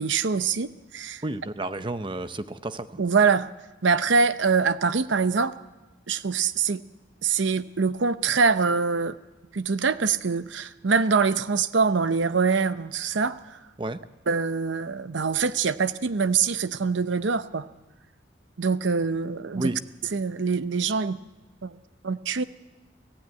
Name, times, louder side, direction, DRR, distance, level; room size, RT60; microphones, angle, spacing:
voice 1, 0.0-1.2 3.0-3.5 3.8-5.5 6.1-6.8 7.2-9.2 9.5-13.4 14.3-17.7 18.6-19.7 20.1-21.2 21.6-21.7 22.0-22.4, right 5 dB, 80° right, 13 dB, 0.7 m, -24 dB
voice 2, 1.2-3.0 13.8-14.0 19.5-19.8, right 2 dB, 25° right, 11 dB, 0.8 m, -31 dB
24.0 x 15.5 x 9.4 m, 1.1 s
head